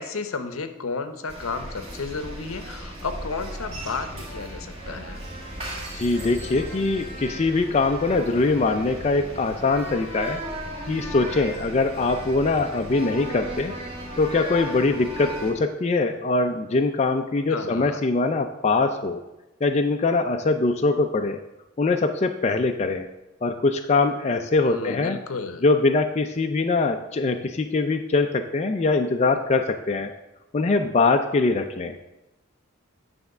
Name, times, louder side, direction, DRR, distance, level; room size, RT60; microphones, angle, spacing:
voice 1, 0.0-5.2 17.5-18.1 24.6-25.6, left 4 dB, 75° left, 9 dB, 0.7 m, -32 dB
sound 1, 1.3-15.5, right 1 dB, 30° right, 1.6 m, -36 dB
voice 2, 5.9-10.4 10.8-13.7 14.2-19.2 19.6-21.4 21.8-23.1 23.4-25.2 25.6-30.1 30.5-32.0, left 3 dB, 30° left, 5 dB, 0.3 m, -22 dB
9.4 x 3.5 x 6.5 m, 0.97 s
head